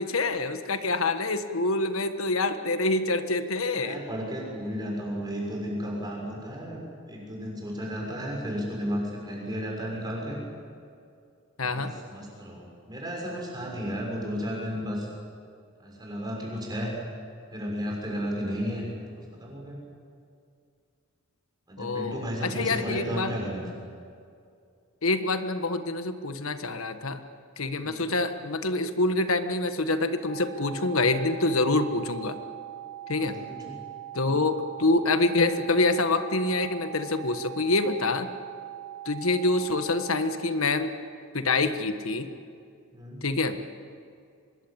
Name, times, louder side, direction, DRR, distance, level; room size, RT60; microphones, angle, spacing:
voice 1, 0.0-4.0 11.6-11.9 21.8-23.3 25.0-27.2 27.6-32.4 33.1-33.4 34.1-38.3 39.0-40.9 41.3-42.3 43.2-43.6, left 2 dB, 85° left, 9 dB, 1.5 m, -26 dB
voice 2, 3.7-6.8 7.0-10.4 11.6-15.1 15.8-16.9 17.5-19.8 21.7-23.9 27.8-28.1 33.2-33.8 34.3-34.4 42.9-43.2, equal, 20° right, -1 dB, 6.5 m, -33 dB
sound 1, 30.3-40.3, right 13 dB, 30° left, 3.7 m, -41 dB
24.5 x 21.0 x 8.8 m, 2.3 s
head